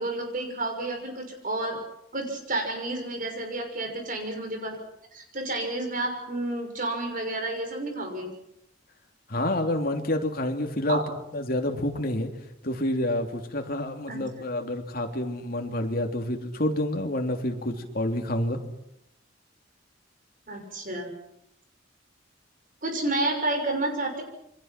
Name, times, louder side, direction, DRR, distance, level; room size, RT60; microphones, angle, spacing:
voice 1, 0.0-1.8 2.1-4.8 5.1-8.3 10.9-11.0 14.1-14.2 20.5-21.1 22.8-24.2, right 2 dB, 45° right, 4 dB, 6.2 m, -30 dB
voice 2, 9.3-11.0 11.3-12.3 12.6-18.6, left 1 dB, 50° left, 3 dB, 3.2 m, -28 dB
28.0 x 24.5 x 6.1 m, 0.79 s
head